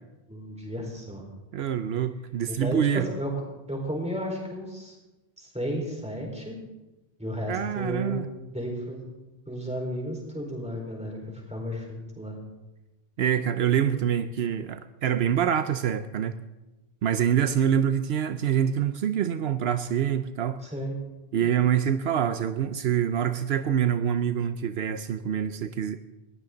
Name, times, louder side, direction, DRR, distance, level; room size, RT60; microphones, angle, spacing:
voice 1, 0.3-1.2 2.5-3.3 3.7-5.0 5.4-6.5 7.2-8.2 8.5-9.1 9.5-11.2 11.5-12.3 20.6-21.0, equal, 5° right, -1 dB, 4.5 m, -33 dB
voice 2, 1.5-3.1 7.5-8.2 13.2-16.4 17.0-20.6 21.3-26.0, right 9 dB, 80° right, 11 dB, 0.9 m, -25 dB
20.0 x 15.0 x 3.9 m, 1.0 s
omnidirectional pair, 1.0 m